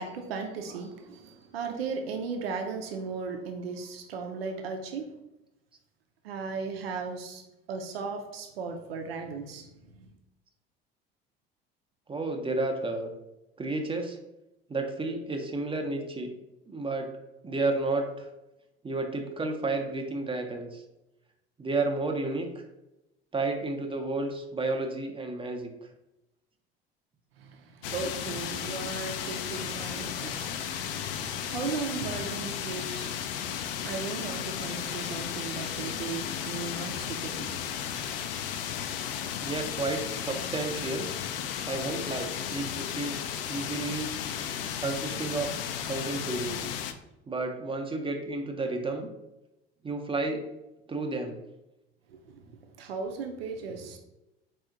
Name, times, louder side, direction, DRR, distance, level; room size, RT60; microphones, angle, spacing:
voice 1, 0.0-5.1 6.2-7.4 7.7-9.7 27.4-27.5 27.9-33.2 33.8-37.6 52.1-52.4 52.8-54.0, right 4 dB, 75° right, 3 dB, 0.6 m, -36 dB
voice 2, 12.1-13.1 13.6-14.2 14.7-16.3 16.7-17.1 17.4-18.3 18.8-20.8 21.6-22.6 23.3-25.7 39.4-41.1 41.7-44.1 44.8-45.5 45.9-46.7 47.3-49.1 49.8-50.4 50.9-51.4, right 2 dB, 15° right, 3 dB, 0.6 m, -31 dB
sound 1, 27.8-46.9, left 9 dB, 65° left, 0.4 m, -34 dB
4.3 x 2.4 x 3.7 m, 0.92 s
figure-of-eight pair, 65°, 30 cm